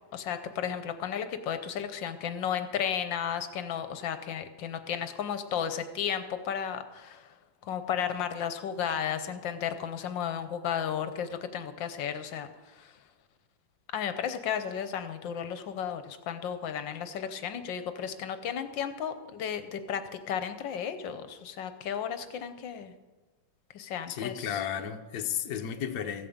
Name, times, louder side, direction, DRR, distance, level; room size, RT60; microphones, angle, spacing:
voice 1, 0.1-7.3 7.6-12.9 13.9-22.9 23.7-24.6, left 8 dB, 80° left, 10 dB, 1.5 m, -34 dB
voice 2, 24.1-26.3, left 9 dB, 60° left, 6 dB, 1.3 m, -33 dB
15.0 x 8.8 x 7.2 m, 1.2 s
omnidirectional pair, 2.0 m